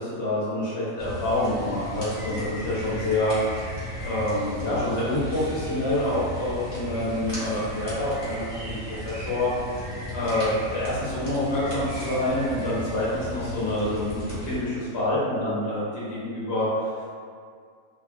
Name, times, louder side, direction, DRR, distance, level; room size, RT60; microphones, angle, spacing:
voice 1, 0.0-3.3 4.0-8.8 9.0-9.5 10.1-16.9, left 1 dB, 55° left, -9 dB, 0.8 m, -27 dB
sound 1, 1.0-14.6, equal, 20° left, 1.3 m, -35 dB
2.6 x 2.3 x 2.4 m, 2.1 s
omnidirectional pair, 1.4 m